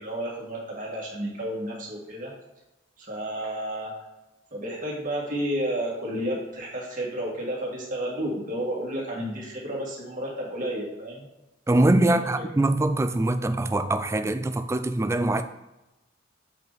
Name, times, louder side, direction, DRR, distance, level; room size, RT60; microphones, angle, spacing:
voice 1, 0.0-2.3 3.1-3.9 4.5-11.2 12.0-12.1, right 1 dB, 40° right, 2.0 m, -31 dB
voice 2, 11.7-15.4, right 2 dB, 15° right, 0.3 m, -23 dB
7.0 x 4.8 x 4.1 m
head